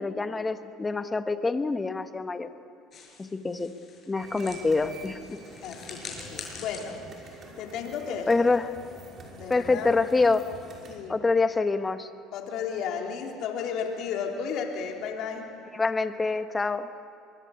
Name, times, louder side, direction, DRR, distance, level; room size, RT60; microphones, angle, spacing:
voice 1, 0.0-2.5 3.2-3.7 4.1-5.4 8.3-8.7 9.5-10.5 11.1-12.1 15.7-16.9, left 3 dB, 20° left, 9 dB, 1.3 m, -26 dB
sound 1, 2.9-8.2, left 5 dB, 40° left, 6.7 m, -45 dB
sound 2, 4.1-11.0, right 3 dB, 40° right, 5.9 m, -47 dB
voice 2, 5.6-8.5 9.3-10.0 10.9-11.1 12.3-15.6, left 6 dB, 65° left, 1 dB, 3.7 m, -34 dB
23.5 x 23.0 x 8.5 m, 2.4 s
supercardioid pair, 100°, 0 cm